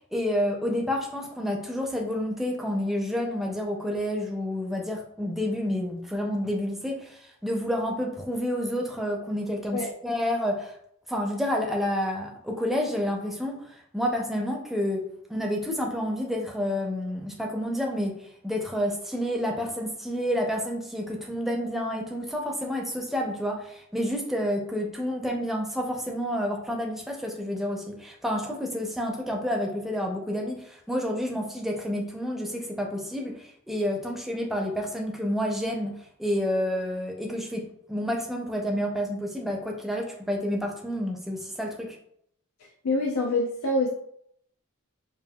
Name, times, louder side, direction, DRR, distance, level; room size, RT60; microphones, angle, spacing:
voice 1, 0.1-10.7 11.1-18.2 18.4-42.0, equal, ahead, 0 dB, 0.5 m, -29 dB
voice 2, 42.8-43.9, left 2 dB, 85° left, -1 dB, 0.5 m, -25 dB
5.3 x 2.6 x 2.2 m, 0.70 s
head